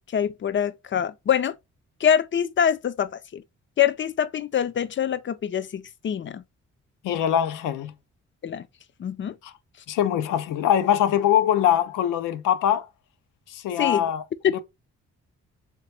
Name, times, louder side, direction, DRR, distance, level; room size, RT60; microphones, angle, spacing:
voice 1, 0.0-1.5 2.0-3.4 3.8-6.4 8.4-8.6 9.0-9.3 13.8-14.0 14.4-14.6, left 8 dB, 40° left, 0.4 m, -24 dB
voice 2, 7.0-7.9 9.4-9.5 9.9-12.9 13.5-14.2 14.5-14.6, left 10 dB, 90° left, 0.6 m, -22 dB
3.3 x 3.0 x 3.2 m
cardioid pair, 75°, 31 cm